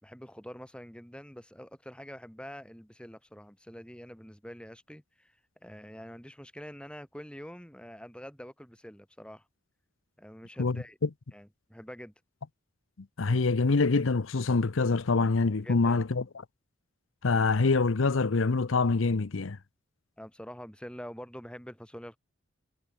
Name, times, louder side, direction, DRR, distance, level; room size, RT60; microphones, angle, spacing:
voice 1, 0.0-9.5 10.2-11.0 11.3-12.1 15.6-16.0 20.2-22.2, equal, 5° left, 6.3 m, -46 dB
voice 2, 13.2-16.2 17.2-19.6, left 3 dB, 85° left, 0.8 m, -25 dB
head